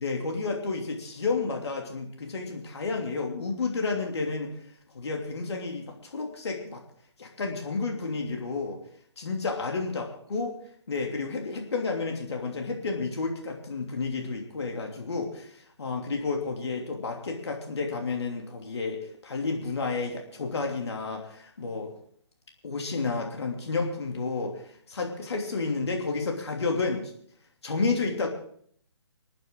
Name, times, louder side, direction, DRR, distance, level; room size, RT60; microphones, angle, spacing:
voice 1, 0.0-4.5 4.9-6.8 7.2-8.8 9.2-10.6 10.9-21.9 22.6-27.1 27.6-28.3, left 4 dB, 65° left, 1 dB, 3.0 m, -31 dB
26.5 x 9.2 x 3.8 m, 0.62 s
figure-of-eight pair, 145°, 15 cm